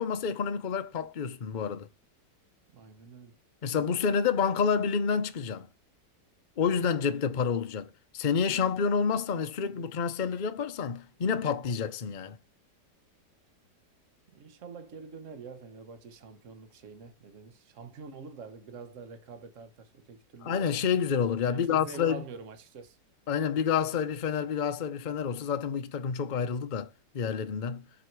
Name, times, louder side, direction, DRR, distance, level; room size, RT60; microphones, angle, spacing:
voice 1, 0.0-1.9 3.6-5.7 6.6-12.4 20.4-22.2 23.3-26.9 27.1-27.8, left 6 dB, 45° left, 0.6 m, -29 dB
voice 2, 2.7-3.4 14.3-20.6 21.5-23.0, right 5 dB, 50° right, 1.4 m, -46 dB
7.7 x 7.2 x 4.7 m
omnidirectional pair, 1.9 m